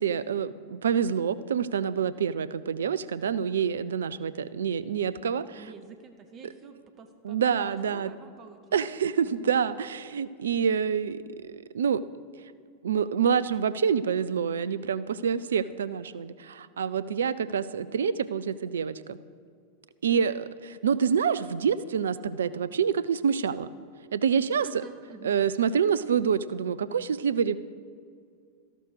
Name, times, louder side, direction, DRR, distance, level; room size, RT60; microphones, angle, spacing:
voice 1, 0.0-5.7 6.4-6.5 7.2-8.1 8.7-12.0 12.8-19.2 20.0-23.7 24.1-24.8 25.2-27.6, right 7 dB, 65° right, 15 dB, 0.5 m, -27 dB
voice 2, 5.6-8.6 9.2-9.5 24.6-25.4, right 4 dB, 30° right, 6 dB, 1.1 m, -48 dB
13.5 x 12.0 x 6.4 m, 2.2 s
figure-of-eight pair, 90°, 0 cm